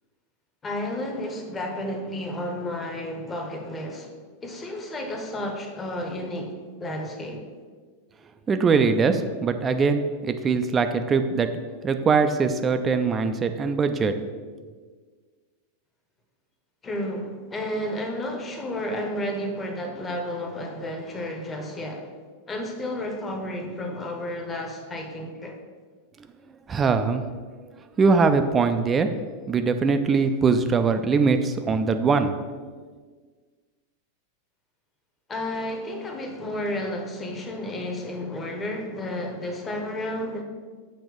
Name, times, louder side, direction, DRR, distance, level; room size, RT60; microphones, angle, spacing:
voice 1, 0.6-4.1 4.4-6.5 6.8-7.4 16.8-22.1 22.5-25.6 35.3-40.4, left 1 dB, 20° left, 2 dB, 0.9 m, -32 dB
voice 2, 8.5-11.5 11.8-14.2 26.7-27.2 28.0-29.1 29.5-32.3, right 5 dB, 20° right, 8 dB, 0.4 m, -22 dB
6.3 x 3.0 x 5.2 m, 1.5 s
figure-of-eight pair, 90°, 0 cm